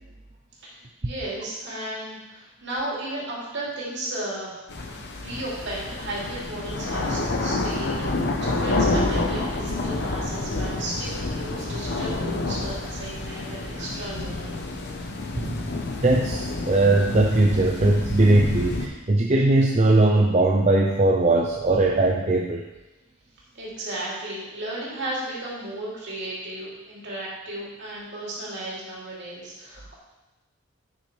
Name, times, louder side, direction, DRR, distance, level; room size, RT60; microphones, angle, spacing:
voice 1, 0.6-4.6 5.2-14.6 23.5-30.0, right 1 dB, 55° right, -6 dB, 2.7 m, -34 dB
sound 1, 4.7-18.9, left 2 dB, 55° left, 0.9 m, -28 dB
voice 2, 16.0-22.6, right 2 dB, 35° right, 0 dB, 0.6 m, -20 dB
10.0 x 6.3 x 3.3 m, 1.1 s
head